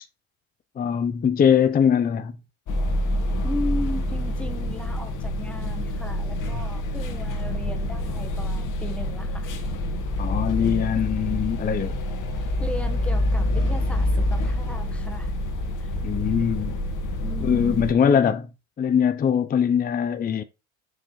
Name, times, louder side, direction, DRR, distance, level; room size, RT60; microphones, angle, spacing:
voice 1, 0.8-2.4 10.2-11.9 16.0-16.7 17.4-18.5 18.8-20.4, left 8 dB, 20° left, 0.6 m, -22 dB
sound 1, 2.7-17.9, left 1 dB, 50° left, 2.0 m, -27 dB
voice 2, 3.4-9.5 12.6-15.3 15.8-15.9 17.2-18.0, left 1 dB, 5° left, 1.6 m, -36 dB
6.4 x 4.5 x 4.2 m
hypercardioid pair, 80°, 41 cm